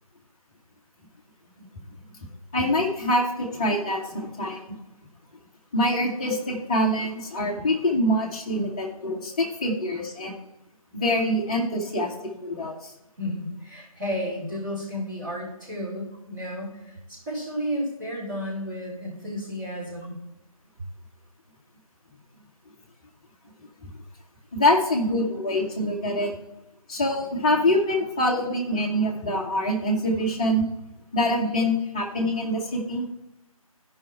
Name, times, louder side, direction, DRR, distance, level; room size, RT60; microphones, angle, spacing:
voice 1, 2.5-4.7 5.7-10.4 10.9-12.9 23.8-23.9 24.5-26.3 26.9-30.7 31.1-33.0, left 1 dB, 10° left, -3 dB, 0.9 m, -25 dB
voice 2, 13.2-20.2, equal, 30° right, -7 dB, 3.9 m, -32 dB
13.5 x 5.5 x 4.4 m, 0.87 s
figure-of-eight pair, 155°, 19 cm